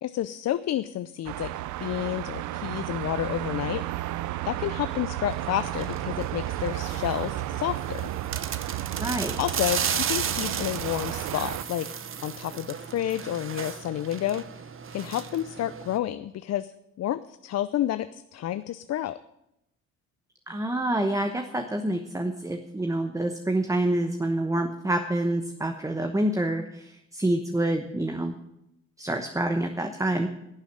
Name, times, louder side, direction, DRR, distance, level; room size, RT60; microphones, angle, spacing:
voice 1, 0.0-1.5 1.8-4.1 4.4-8.1 9.4-11.9 12.2-14.6 14.9-16.7 17.0-19.2, left 12 dB, 60° left, 13 dB, 0.5 m, -30 dB
sound 1, 1.3-11.6, right 14 dB, 75° right, 0.5 m, -33 dB
sound 2, 5.3-16.0, right 7 dB, 45° right, 1.0 m, -35 dB
voice 2, 9.0-9.3 20.5-28.3 29.0-30.3, right 1 dB, 10° right, 6 dB, 1.0 m, -27 dB
11.5 x 7.3 x 8.8 m, 0.85 s
cardioid pair, 90°, 30 cm